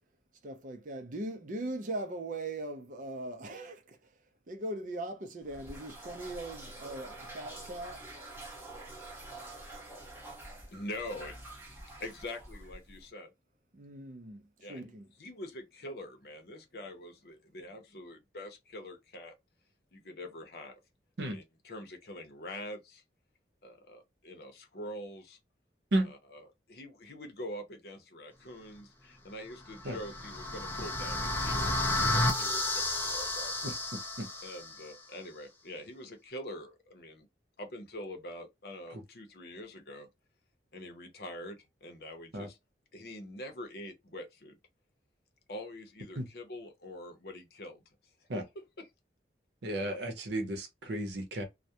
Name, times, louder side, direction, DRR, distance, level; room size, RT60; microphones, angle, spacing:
voice 1, 0.4-4.0 4.5-8.1 13.7-14.4 14.7-15.1, right 1 dB, 45° right, 0.5 m, -40 dB
sound 1, 5.4-13.1, right 2 dB, 10° right, 0.7 m, -47 dB
voice 2, 10.7-11.5 12.0-13.3 14.6-19.4 19.9-20.8 21.2-23.0 23.6-25.4 26.1-26.4 26.7-33.7 34.4-37.3 37.6-40.1 40.7-42.6 42.9-44.6 45.5-47.8 48.8-48.9, left 1 dB, 60° left, 0.7 m, -44 dB
sound 2, 29.7-34.8, left 2 dB, 10° left, 0.3 m, -32 dB
voice 3, 33.6-34.3 38.9-39.0 42.3-42.5 46.2-46.3 48.3-48.4 49.6-51.4, right 1 dB, 75° right, 0.7 m, -34 dB
2.3 x 2.1 x 2.7 m
head